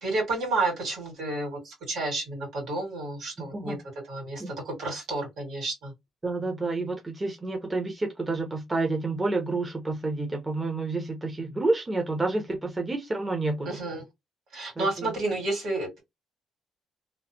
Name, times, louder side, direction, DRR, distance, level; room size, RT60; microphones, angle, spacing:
voice 1, 0.0-3.8 4.1-5.9 13.6-14.0 14.5-16.0, right 2 dB, 80° right, 2.0 m, -31 dB
voice 2, 6.2-13.8 14.8-15.1, right 2 dB, 20° right, 0.9 m, -29 dB
3.1 x 2.0 x 2.8 m
cardioid pair, 90°, 0 cm